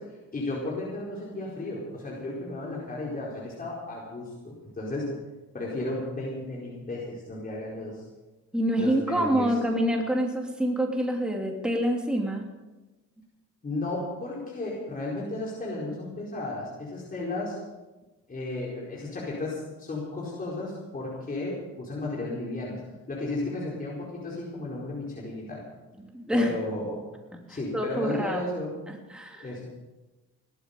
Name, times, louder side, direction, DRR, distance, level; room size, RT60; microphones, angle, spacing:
voice 1, 0.0-5.1 5.5-8.1 8.8-9.6 13.6-17.6 18.3-25.7 26.3-27.0 27.5-28.7 29.3-29.9, left 2 dB, 30° left, -5 dB, 4.6 m, -34 dB
voice 2, 8.5-12.5 26.1-26.6 27.5-28.4 28.9-29.5, equal, 5° right, 0 dB, 2.8 m, -27 dB
18.0 x 13.5 x 5.4 m, 1.1 s
cardioid pair, 90°, 30 cm